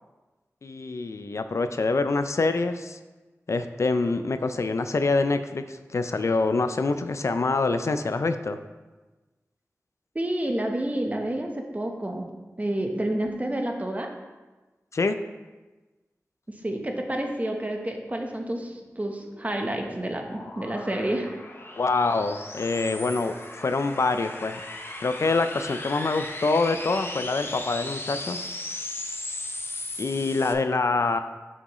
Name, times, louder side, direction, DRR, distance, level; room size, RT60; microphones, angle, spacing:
voice 1, 0.6-3.0 3.5-8.6 14.9-15.2 21.7-24.6 25.0-28.4 30.0-31.2, left 3 dB, 65° left, 9 dB, 0.4 m, -25 dB
voice 2, 10.1-12.3 12.6-14.1 16.5-21.3, right 1 dB, 30° right, 2 dB, 1.0 m, -29 dB
sound 1, 18.7-30.5, left 2 dB, 45° left, 0.8 m, -37 dB
7.5 x 6.1 x 3.1 m, 1.2 s
wide cardioid pair, 55°, 5 cm